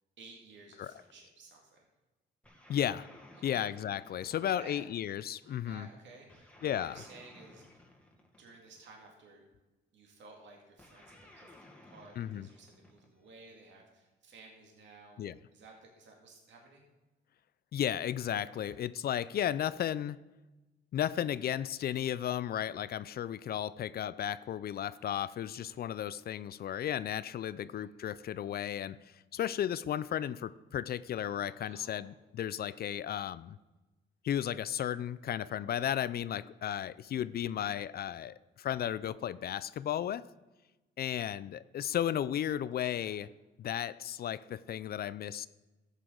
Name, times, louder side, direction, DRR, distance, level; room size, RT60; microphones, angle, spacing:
voice 1, 0.2-1.9 3.4-3.7 4.3-4.9 5.4-7.8 8.4-9.4 9.9-15.2 15.5-16.9 18.6-18.8 27.6-27.9 31.4-32.2 42.9-43.2, right 3 dB, 70° right, 0 dB, 2.1 m, -55 dB
sound 1, 2.4-5.0 6.3-8.9 10.8-13.4, left 1 dB, 5° left, 1.8 m, -57 dB
voice 2, 2.7-3.1 3.4-5.9 6.6-7.0 12.2-12.5 15.2-15.4 17.7-20.2 20.9-29.0 29.3-33.6 34.2-40.3 41.0-43.3 43.6-45.5, left 10 dB, 50° left, 18 dB, 0.4 m, -34 dB
13.0 x 8.3 x 3.8 m, 1.1 s
cardioid pair, 90°, 20 cm